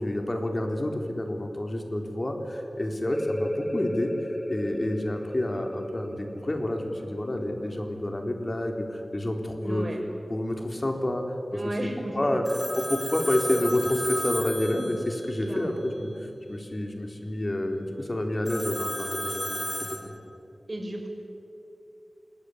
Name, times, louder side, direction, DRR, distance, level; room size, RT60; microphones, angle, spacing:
voice 1, 0.0-4.1 4.5-9.9 10.3-11.2 11.5-11.9 12.2-12.4 12.8-19.5 20.0-20.1, left 1 dB, 35° left, 4 dB, 3.8 m, -29 dB
sound 1, 3.1-8.5, equal, 5° right, 2.2 m, -35 dB
voice 2, 9.6-10.0 11.5-12.4 15.4-15.8 20.7-21.1, right 1 dB, 40° right, 1 dB, 6.1 m, -33 dB
Telephone, 12.5-15.5 18.5-20.0, equal, 10° left, 4.6 m, -33 dB
27.5 x 20.5 x 9.9 m, 2.9 s
wide cardioid pair, 80°, 0 cm